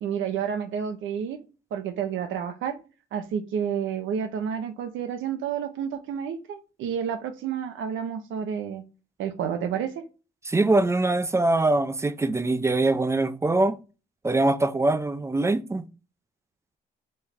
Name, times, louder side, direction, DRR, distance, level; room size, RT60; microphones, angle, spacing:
voice 1, 0.0-1.4 1.7-2.8 3.1-8.8 9.2-10.0, right 8 dB, 80° right, 0.7 m, -30 dB
voice 2, 10.5-13.7 14.2-15.8, right 2 dB, 15° right, 0.4 m, -23 dB
4.3 x 3.2 x 3.5 m
cardioid pair, 90°, 20 cm